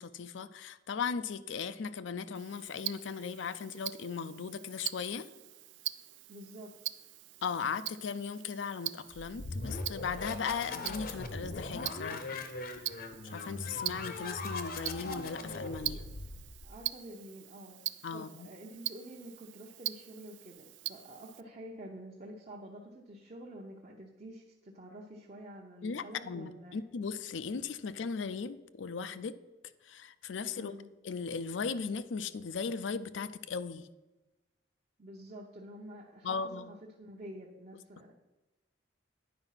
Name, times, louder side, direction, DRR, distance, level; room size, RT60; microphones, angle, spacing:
voice 1, 0.0-5.3 7.4-12.4 13.2-16.0 18.0-18.5 25.8-29.4 29.8-30.7 31.0-33.9 36.2-36.7, left 5 dB, 80° left, 0.4 m, -37 dB
Tick-tock, 2.3-21.4, right 16 dB, 70° right, 0.3 m, -43 dB
voice 2, 6.3-6.8 16.6-17.8 18.1-26.8 30.5-30.8 35.0-38.1, right 1 dB, 40° right, 0.8 m, -48 dB
sound 1, 9.1-16.8, left 3 dB, 50° left, 0.8 m, -40 dB
9.6 x 4.9 x 5.7 m
head